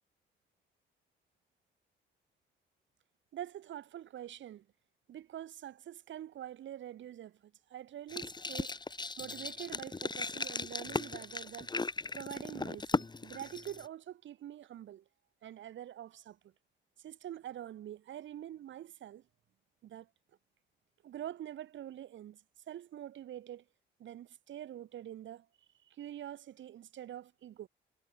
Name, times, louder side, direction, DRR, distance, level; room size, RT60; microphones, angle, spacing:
voice 1, 3.3-4.7 5.1-8.8 9.2-11.7 12.1-15.0 15.4-16.5 17.0-19.2 19.8-20.1 21.0-22.4 22.7-23.6 24.0-25.5 25.8-27.7, right 11 dB, 70° right, 3.1 m, -45 dB
sound 1, 8.1-13.9, left 3 dB, 20° left, 2.1 m, -37 dB
cardioid pair, 90°, 20 cm